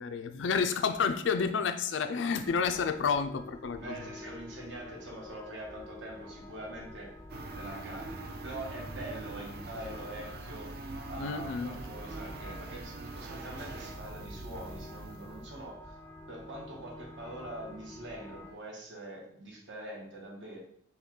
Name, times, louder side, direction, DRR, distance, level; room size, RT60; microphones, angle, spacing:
voice 1, 0.0-4.0 11.2-11.8, left 5 dB, 85° left, 9 dB, 0.4 m, -30 dB
sound 1, 2.4-18.5, left 2 dB, 15° left, 0.4 m, -49 dB
voice 2, 3.8-7.1 7.5-10.7 11.1-16.0 16.3-20.6, right 1 dB, 80° right, -1 dB, 1.3 m, -44 dB
sound 2, 7.3-15.6, right 3 dB, 55° right, 0.5 m, -43 dB
5.7 x 2.3 x 3.8 m, 0.63 s
head